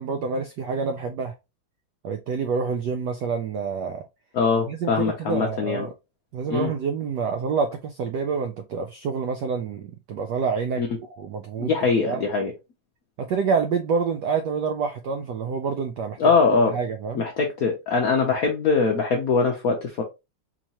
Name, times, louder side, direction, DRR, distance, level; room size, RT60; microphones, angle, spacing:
voice 1, 0.0-1.3 2.0-4.0 4.7-5.9 6.3-10.8 11.2-11.7 12.1-12.2 13.2-16.3 16.7-17.2, right 5 dB, 80° right, 0.9 m, -27 dB
voice 2, 4.3-5.9 6.5-6.7 10.8-10.9 11.6-12.5 16.2-16.8 17.1-20.0, left 4 dB, 75° left, 0.8 m, -22 dB
4.5 x 2.9 x 2.8 m
omnidirectional pair, 2.3 m